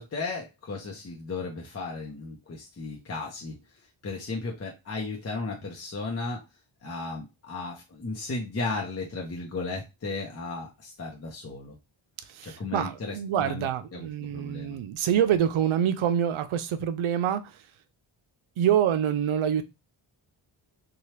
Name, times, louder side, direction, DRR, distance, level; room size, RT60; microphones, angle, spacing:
voice 1, 0.0-6.4 6.8-11.8 12.4-14.8, left 3 dB, 30° left, -1 dB, 0.7 m, -35 dB
voice 2, 12.3-17.6 18.6-19.6, right 9 dB, 75° right, 11 dB, 0.6 m, -26 dB
2.8 x 2.3 x 3.2 m, 0.24 s
wide cardioid pair, 125°, 50 cm